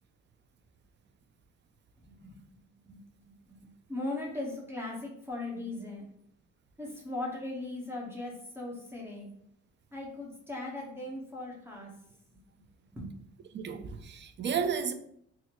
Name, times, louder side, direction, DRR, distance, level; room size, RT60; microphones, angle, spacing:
voice 1, 2.0-2.4 2.8-6.1 6.8-9.3 9.9-11.9 12.9-13.2, left 2 dB, 10° right, 1.0 m, -39 dB
voice 2, 13.5-14.9, right 6 dB, 40° right, 0.4 m, -32 dB
4.1 x 2.0 x 2.9 m
cardioid pair, 90°, 30 cm